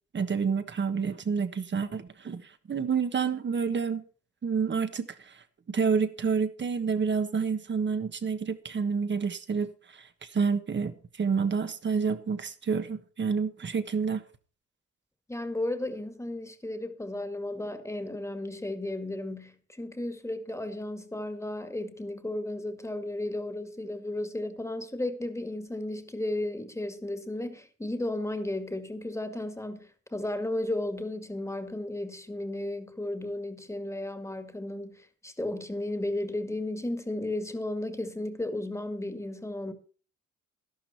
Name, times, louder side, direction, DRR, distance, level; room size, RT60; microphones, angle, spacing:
voice 1, 0.1-2.4 2.7-4.0 4.4-5.3 5.7-10.1 10.3-14.2, right 5 dB, 40° right, 1.3 m, -29 dB
voice 2, 15.3-39.7, left 1 dB, 10° left, 2.0 m, -34 dB
12.0 x 12.0 x 4.4 m
cardioid pair, 90°, 30 cm